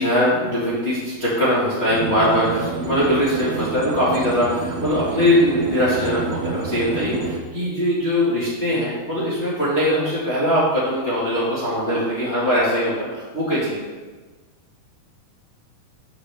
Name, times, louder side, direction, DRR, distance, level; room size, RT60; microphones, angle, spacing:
voice 1, 0.0-13.8, equal, 45° left, -8 dB, 0.8 m, -21 dB
sound 1, 1.9-7.4, right 4 dB, 75° right, 1.8 m, -29 dB
12.5 x 5.2 x 3.4 m, 1.3 s
omnidirectional pair, 4.3 m